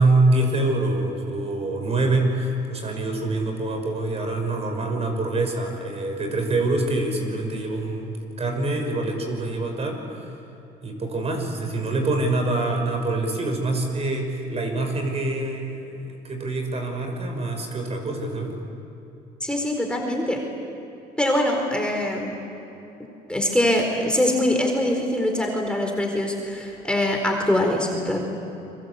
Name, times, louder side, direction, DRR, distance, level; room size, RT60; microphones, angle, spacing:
voice 1, 0.0-10.0 10.8-18.5, right 2 dB, 40° right, 4 dB, 5.9 m, -25 dB
voice 2, 19.4-20.4 21.2-22.4 23.3-28.2, left 1 dB, 5° left, 1 dB, 4.3 m, -23 dB
29.5 x 23.5 x 8.4 m, 3.0 s
cardioid pair, 110°, 17 cm